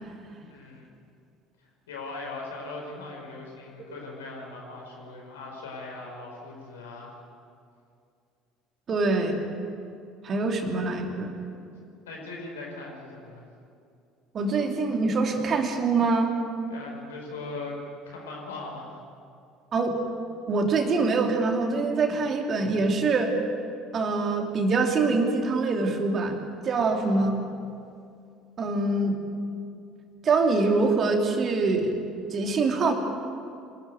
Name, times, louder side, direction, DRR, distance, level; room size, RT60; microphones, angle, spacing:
voice 1, 0.3-0.9 1.9-7.2 12.0-13.5 16.7-17.8 18.0-19.0 26.8-27.3, left 3 dB, 75° left, 0 dB, 4.6 m, -40 dB
voice 2, 8.9-9.4 10.2-11.3 14.3-16.3 19.7-20.0 20.5-23.4 23.9-26.4 26.6-27.3 28.6-29.2 30.2-32.0 32.3-32.9, right 3 dB, 40° right, 3 dB, 2.9 m, -24 dB
25.0 x 13.5 x 9.3 m, 2.4 s
figure-of-eight pair, 60°, 0 cm